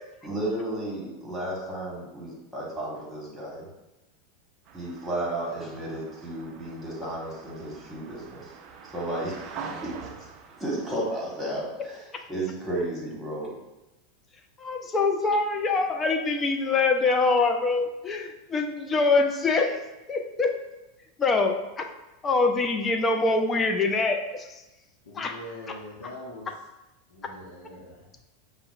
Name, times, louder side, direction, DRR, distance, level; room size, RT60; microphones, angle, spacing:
voice 1, 0.2-3.7 4.7-8.5 8.9-9.4 9.8-9.9 10.6-13.5, right 1 dB, 10° right, -5 dB, 1.4 m, -33 dB
sound 1, 4.7-11.7, right 5 dB, 40° right, 0.4 m, -44 dB
voice 2, 14.6-19.8 20.1-20.5 21.2-21.9 22.2-24.6 25.1-25.4 25.7-25.8, left 3 dB, 25° left, 4 dB, 0.4 m, -24 dB
voice 3, 25.1-26.5 27.1-28.0, left 1 dB, 65° left, -4 dB, 0.6 m, -42 dB
5.4 x 2.1 x 2.5 m, 0.97 s
figure-of-eight pair, 85°, 0 cm